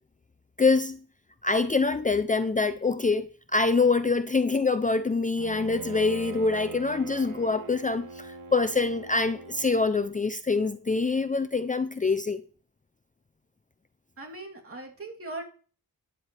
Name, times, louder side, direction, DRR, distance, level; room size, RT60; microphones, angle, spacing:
voice 1, 0.6-1.0 1.4-12.4, left 4 dB, 20° left, 0.6 m, -25 dB
Bowed string instrument, 5.4-10.2, right 6 dB, 60° right, 1.3 m, -43 dB
voice 2, 14.2-15.4, right 2 dB, 40° right, 3.3 m, -39 dB
12.5 x 10.0 x 3.4 m
wide cardioid pair, 110°, 36 cm